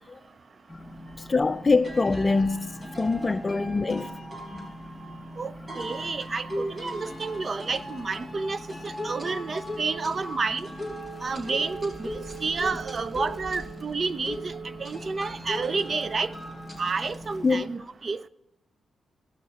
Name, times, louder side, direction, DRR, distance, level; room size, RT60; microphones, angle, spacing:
sound 1, 0.7-17.6, equal, 10° left, 4.2 m, -43 dB
sound 2, 1.1-1.2 1.8-16.9, equal, 25° right, 4.8 m, -39 dB
voice 1, 1.2-4.2 4.5-4.7 17.4-17.7, left 3 dB, 30° left, 0.4 m, -24 dB
voice 2, 5.4-10.7 11.2-14.5 14.8-16.3 16.8-18.3, right 4 dB, 45° right, 0.6 m, -30 dB
17.0 x 6.1 x 4.2 m
cardioid pair, 60°, 0 cm